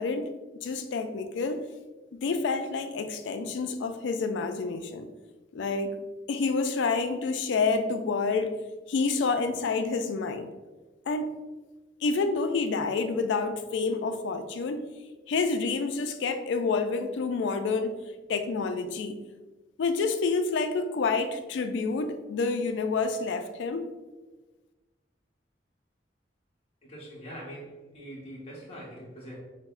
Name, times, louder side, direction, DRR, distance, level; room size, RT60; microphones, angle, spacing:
voice 1, 0.0-1.6 2.1-5.1 5.5-5.9 6.3-8.6 8.9-10.5 11.1-11.3 12.0-14.8 15.3-17.9 18.3-19.2 19.8-23.9, left 4 dB, 75° left, 8 dB, 0.3 m, -28 dB
voice 2, 26.8-29.4, equal, 35° left, -5 dB, 1.1 m, -43 dB
5.7 x 2.1 x 2.4 m, 1.2 s
head